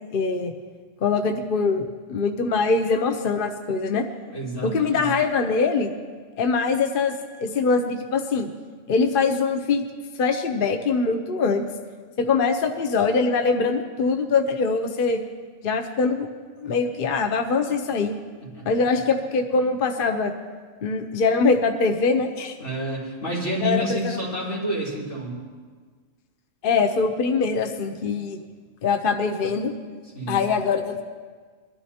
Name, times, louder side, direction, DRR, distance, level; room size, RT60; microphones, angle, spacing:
voice 1, 0.1-0.5 1.0-4.0 4.6-5.9 6.4-8.5 8.9-9.8 10.2-11.7 12.2-15.2 15.6-16.3 16.6-18.1 18.7-20.3 20.8-22.6 23.6-24.2 26.6-28.4 28.8-29.7 30.3-31.0, left 4 dB, 50° left, 5 dB, 0.9 m, -23 dB
voice 2, 4.3-5.1 18.5-19.0 22.6-25.4 30.1-30.4, right 1 dB, 85° left, -7 dB, 4.3 m, -29 dB
22.5 x 12.5 x 2.9 m, 1.5 s
omnidirectional pair, 1.3 m